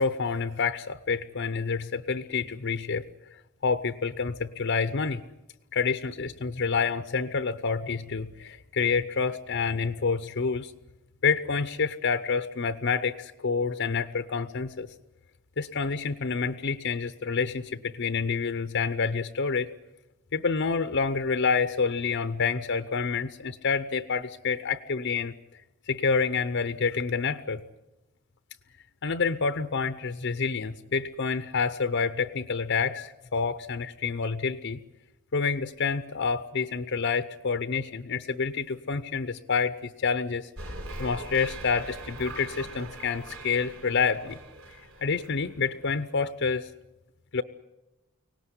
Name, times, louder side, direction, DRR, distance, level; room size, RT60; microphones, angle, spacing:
voice 1, 0.0-3.0 3.6-5.2 5.7-10.7 11.2-14.9 15.6-19.7 20.3-27.6 29.0-34.8 35.3-40.5 41.0-44.4 44.7-46.7 47.3-47.4, left 5 dB, 60° left, 11 dB, 0.7 m, -28 dB
sound 1, 40.6-46.0, right 2 dB, 80° right, 4.1 m, -41 dB
24.0 x 18.5 x 9.8 m, 1.0 s
head